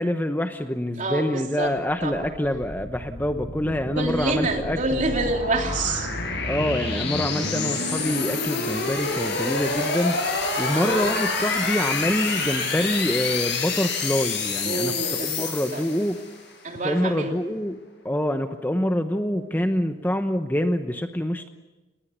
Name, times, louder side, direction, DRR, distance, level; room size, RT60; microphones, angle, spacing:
voice 1, 0.0-5.0 6.4-10.2 10.6-14.9 15.2-16.2 16.8-17.8 18.0-21.5, left 1 dB, 10° left, 7 dB, 0.9 m, -26 dB
voice 2, 1.0-1.7 2.0-2.3 3.9-6.1 10.8-11.2 14.7-15.9 16.6-17.4, right 2 dB, 40° right, 3 dB, 3.2 m, -27 dB
sound 1, 2.2-16.4, left 3 dB, 60° left, 7.1 m, -28 dB
29.5 x 19.5 x 6.9 m, 1.1 s
head